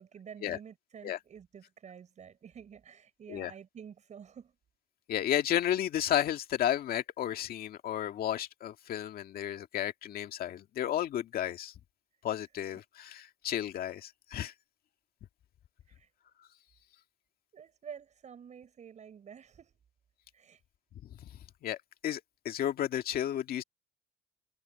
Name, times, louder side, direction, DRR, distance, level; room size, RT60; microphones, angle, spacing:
voice 1, 0.0-4.5 15.9-16.1 17.5-19.7 20.3-20.6, right 7 dB, 45° right, 6.3 m, -49 dB
voice 2, 5.1-11.7 12.2-14.5 21.2-21.3 21.6-23.6, left 11 dB, 60° left, 2.0 m, -33 dB
cardioid pair, 110°, 17 cm